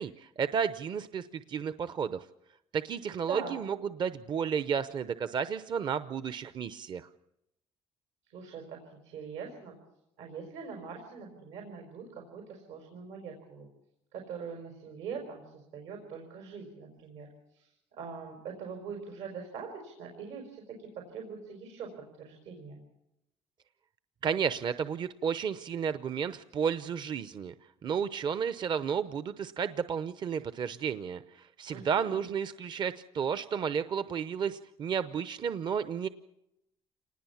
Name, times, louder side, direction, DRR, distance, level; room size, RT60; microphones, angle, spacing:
voice 1, 0.0-2.3 2.7-7.1 24.2-27.5 27.8-36.1, right 7 dB, 45° right, 12 dB, 0.8 m, -32 dB
voice 2, 8.3-9.7 10.2-13.7 14.1-21.9 22.2-22.8 31.7-32.2, right 6 dB, 85° right, 2 dB, 5.1 m, -43 dB
27.0 x 20.0 x 7.2 m, 0.86 s
cardioid pair, 105°, 11 cm